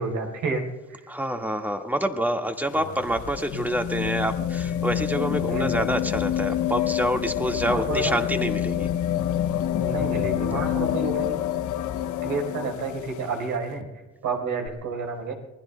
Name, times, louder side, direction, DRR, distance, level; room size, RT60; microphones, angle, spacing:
voice 1, 0.0-1.0 5.5-5.7 7.7-8.2 9.8-11.4 12.2-13.9 14.2-15.3, right 4 dB, 80° right, 1 dB, 4.4 m, -30 dB
voice 2, 1.1-8.9, right 1 dB, 5° right, 4 dB, 1.9 m, -27 dB
sound 1, 2.5-13.5 14.7-14.8, left 11 dB, 75° left, 0.8 m, -27 dB
28.0 x 20.5 x 2.3 m, 1.2 s
cardioid pair, 90°, 30 cm